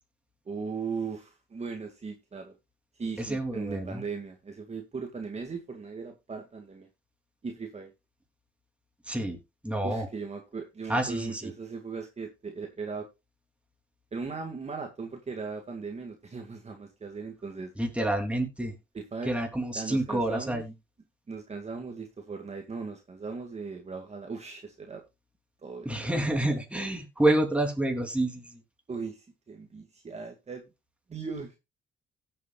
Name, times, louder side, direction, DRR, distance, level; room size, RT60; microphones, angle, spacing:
voice 1, 0.5-2.6 3.0-6.9 7.4-7.9 9.8-13.1 14.1-17.7 18.9-19.4 19.7-20.6 21.3-25.0 25.6-26.5 28.9-30.7 31.1-31.6, right 5 dB, 35° right, 3 dB, 2.1 m, -38 dB
voice 2, 3.2-4.0 9.1-10.1 10.9-11.5 17.8-18.7 19.2-20.7 25.8-28.6, right 1 dB, 5° right, 3 dB, 3.2 m, -28 dB
17.0 x 7.7 x 2.4 m, 0.24 s
cardioid pair, 90°, 20 cm